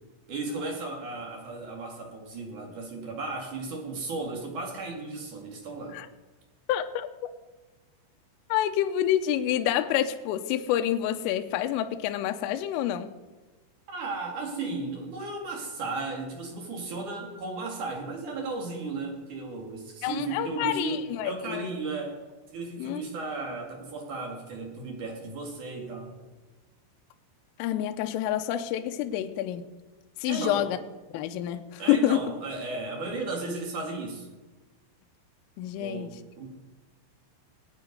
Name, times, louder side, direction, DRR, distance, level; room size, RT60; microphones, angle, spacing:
voice 1, 0.3-6.0 13.9-22.2 22.5-26.1 30.3-30.7 31.8-34.3 35.8-36.5, right 3 dB, 50° right, 1 dB, 2.9 m, -35 dB
voice 2, 6.7-7.1 8.5-13.1 20.0-21.7 22.8-23.0 27.6-29.6 30.2-30.8 31.1-32.3 35.6-36.1, left 11 dB, 85° left, 7 dB, 3.2 m, -28 dB
21.0 x 9.1 x 5.3 m, 1.2 s
omnidirectional pair, 5.9 m